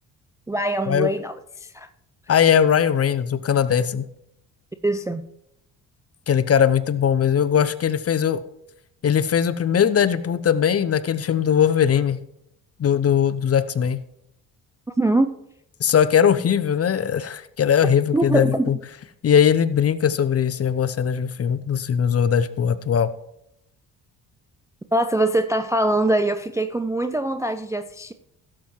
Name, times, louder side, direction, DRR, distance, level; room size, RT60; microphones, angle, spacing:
voice 1, 0.5-1.9 4.8-5.2 15.0-15.3 18.1-18.7 24.9-28.1, right 1 dB, 5° right, 9 dB, 0.4 m, -23 dB
voice 2, 2.3-4.0 6.3-8.4 9.0-12.2 12.8-14.0 15.8-18.8 19.2-23.1, left 8 dB, 35° left, 15 dB, 0.6 m, -20 dB
16.5 x 7.6 x 3.1 m, 0.80 s
hypercardioid pair, 45°, 45 cm